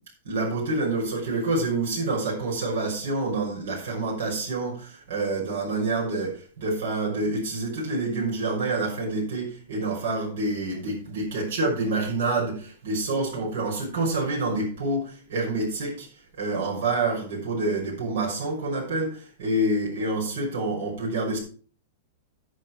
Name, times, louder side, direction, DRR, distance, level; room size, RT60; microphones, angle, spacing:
voice 1, 0.2-16.1 16.4-21.4, right 2 dB, 60° right, -3 dB, 6.2 m, -27 dB
11.0 x 9.0 x 4.7 m, 0.41 s
supercardioid pair, 170°, 0 cm